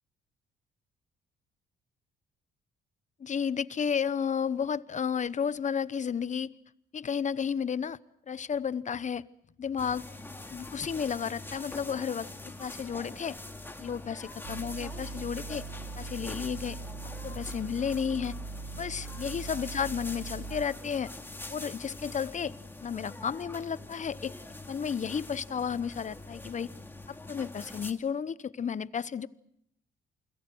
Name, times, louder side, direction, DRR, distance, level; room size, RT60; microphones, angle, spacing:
voice 1, 3.2-6.5 6.9-8.0 8.3-9.2 9.6-10.0 10.5-12.3 12.6-13.4 13.8-15.7 16.0-16.8 17.2-18.3 18.8-21.1 21.5-22.5 22.8-24.3 24.7-26.7 27.1-29.3, left 7 dB, 35° left, 17 dB, 0.9 m, -32 dB
sound 1, 9.8-27.9, left 2 dB, 10° left, 2.3 m, -44 dB
sound 2, 14.4-20.7, right 4 dB, 85° right, 1.9 m, -41 dB
29.0 x 22.0 x 6.2 m, 0.72 s
cardioid pair, 90°, 20 cm